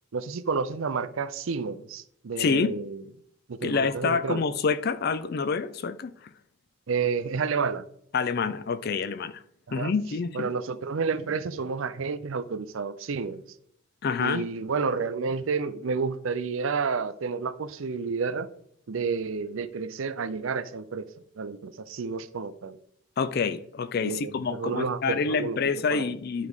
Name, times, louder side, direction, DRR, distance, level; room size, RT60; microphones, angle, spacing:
voice 1, 0.1-3.0 3.5-4.4 6.9-7.9 9.7-9.9 10.3-13.4 14.2-18.5 18.9-21.1 21.4-22.8 24.0-25.6 25.9-26.1, right 5 dB, 65° right, 0.5 m, -30 dB
voice 2, 2.4-2.8 3.6-6.3 8.1-9.4 9.7-10.5 14.0-14.5 23.2-26.5, left 5 dB, 45° left, 0.4 m, -27 dB
11.5 x 4.7 x 3.6 m
head